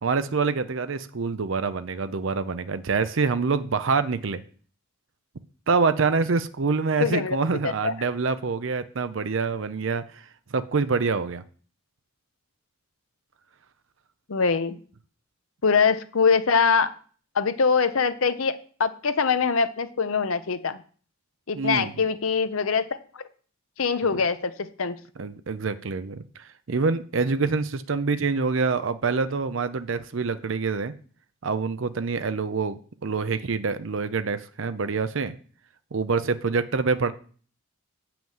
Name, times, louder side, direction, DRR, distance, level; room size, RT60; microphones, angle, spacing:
voice 1, 0.0-4.4 5.7-10.0 10.5-11.4 21.6-21.9 25.2-30.9 31.4-35.4 35.9-37.1, right 4 dB, 65° right, 11 dB, 0.6 m, -26 dB
voice 2, 7.0-7.4 7.6-7.9 14.3-14.8 15.6-16.9 17.3-20.8 21.5-22.9 23.1-23.2 23.8-25.0, left 5 dB, 75° left, 11 dB, 0.8 m, -23 dB
7.6 x 5.9 x 7.2 m, 0.43 s
head